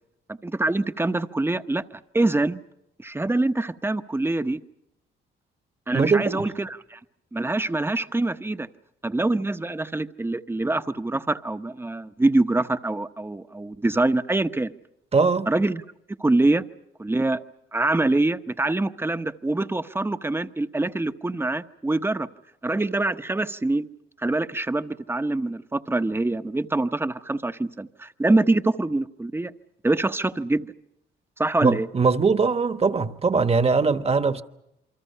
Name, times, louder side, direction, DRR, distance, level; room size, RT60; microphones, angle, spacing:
voice 1, 0.3-2.6 3.0-4.6 5.9-7.0 7.3-8.7 9.0-14.7 15.5-15.8 16.2-16.6 17.0-17.4 17.7-22.3 22.6-23.9 24.2-29.5 29.8-30.7 31.4-31.9, right 2 dB, 10° right, 0.9 m, -24 dB
voice 2, 5.9-6.5 15.1-15.5 31.6-34.4, right 4 dB, 30° right, 1.2 m, -21 dB
28.0 x 24.0 x 5.6 m
cardioid pair, 90°, 20 cm